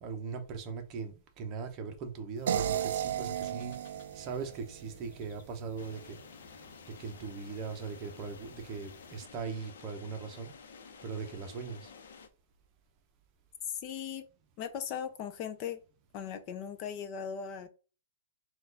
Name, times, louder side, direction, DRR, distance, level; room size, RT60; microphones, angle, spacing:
voice 1, 0.0-3.8 4.1-6.2 6.9-10.5 11.0-11.9, right 5 dB, 25° right, 0.7 m, -40 dB
sound 1, 2.3-9.3, left 3 dB, 50° left, 0.9 m, -58 dB
sound 2, 2.5-5.5, right 9 dB, 65° right, 0.3 m, -34 dB
sound 3, 5.8-12.3, left 5 dB, 75° left, 0.7 m, -52 dB
voice 2, 13.7-14.2 14.6-15.8 16.1-17.7, left 8 dB, 30° left, 0.3 m, -38 dB
4.3 x 2.3 x 3.8 m
hypercardioid pair, 165°, 0 cm